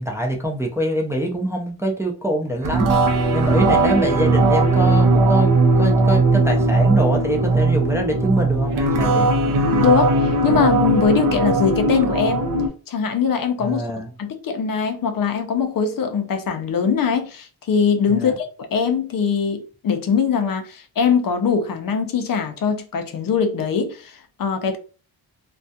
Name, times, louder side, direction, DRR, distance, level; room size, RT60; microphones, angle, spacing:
voice 1, 0.0-2.9 3.3-9.3 13.6-14.1 18.1-18.3, right 1 dB, 5° right, 0.4 m, -24 dB
sound 1, 2.6-12.7, right 2 dB, 55° right, 0.6 m, -18 dB
voice 2, 9.8-12.5 12.9-13.9 14.2-24.8, left 6 dB, 55° left, 0.5 m, -22 dB
2.3 x 2.2 x 2.6 m
cardioid pair, 95°, 40 cm